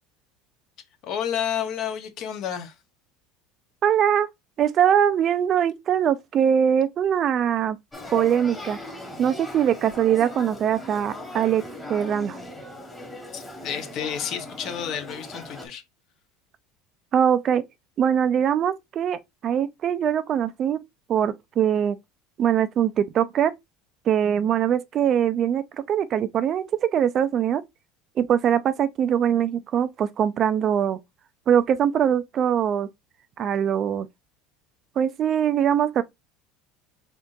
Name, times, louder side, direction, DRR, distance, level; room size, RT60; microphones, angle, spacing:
voice 1, 1.0-2.7 13.3-15.8, left 9 dB, 55° left, 1.0 m, -30 dB
voice 2, 3.8-4.3 4.6-7.8 8.1-8.8 9.2-11.6 11.9-12.4 17.1-17.6 18.0-20.8 21.1-22.0 22.4-23.5 24.1-27.6 28.2-31.0 31.5-32.9 33.4-34.1 35.0-36.0, right 9 dB, 40° right, 0.4 m, -22 dB
Male speech man speaking / Child speech kid speaking / Conversation, 7.9-15.7, left 1 dB, 10° left, 1.3 m, -38 dB
3.7 x 3.6 x 2.5 m
supercardioid pair, 120°, 0 cm